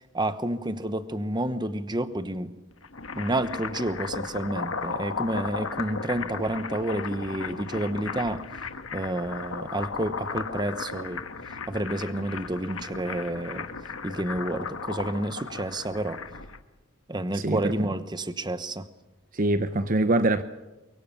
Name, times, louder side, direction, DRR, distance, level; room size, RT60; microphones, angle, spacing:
voice 1, 0.0-2.5 3.1-8.4 8.9-11.2 11.7-13.7 14.0-16.2 17.1-18.9, right 1 dB, 20° right, 1.0 m, -30 dB
sound 1, 2.7-16.6, left 4 dB, 70° left, 1.4 m, -35 dB
voice 2, 17.3-17.9 19.3-20.4, right 2 dB, 40° right, 0.8 m, -24 dB
24.0 x 23.0 x 7.1 m
head